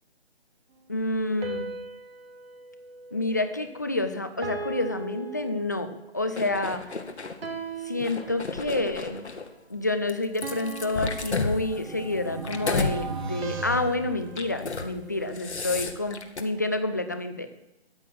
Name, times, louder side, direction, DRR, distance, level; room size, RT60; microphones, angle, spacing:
voice 1, 0.9-1.7 3.1-6.8 7.8-9.3 9.7-17.5, left 2 dB, 15° left, 9 dB, 0.5 m, -29 dB
sound 1, 1.4-3.9 4.4-6.2 7.4-8.9 10.4-12.3 13.4-15.8, right 4 dB, 60° right, 2.0 m, -40 dB
sound 2, 6.4-7.4 7.9-9.5 10.1-13.0 13.4-13.7 14.3-14.9 15.2-16.4, left 4 dB, 85° left, 2.1 m, -32 dB
sound 3, 11.4-14.9, right 2 dB, 45° right, 2.3 m, -37 dB
14.0 x 6.4 x 9.3 m, 0.87 s
hypercardioid pair, 165°, 33 cm